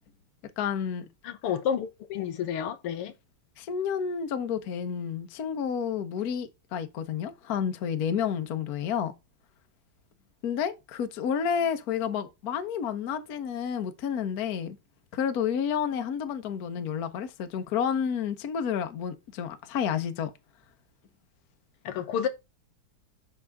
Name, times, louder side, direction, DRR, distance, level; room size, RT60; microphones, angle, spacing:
voice 1, 0.6-1.1 3.6-9.1 10.4-14.8 15.1-20.3, left 7 dB, 50° left, 1.3 m, -30 dB
voice 2, 1.2-3.1 21.9-22.3, left 8 dB, 85° left, 2.0 m, -30 dB
7.2 x 6.2 x 3.5 m
omnidirectional pair, 2.4 m